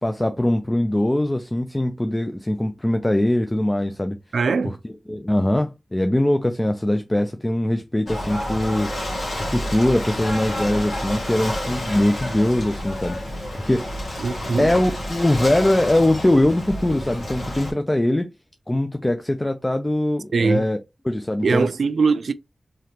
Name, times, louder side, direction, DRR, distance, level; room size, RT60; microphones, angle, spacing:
voice 1, 0.0-4.2 4.8-8.9 9.4-13.9 14.6-18.3 18.7-21.7, left 1 dB, 20° left, 0.5 m, -22 dB
voice 2, 4.3-4.8 14.2-14.7 20.3-20.6 21.4-22.3, right 4 dB, 80° right, 0.4 m, -21 dB
Ocean / Boat Water vehicle, 8.1-17.7, left 1 dB, 75° left, 1.8 m, -29 dB
3.8 x 3.2 x 2.9 m
cardioid pair, 50°, 0 cm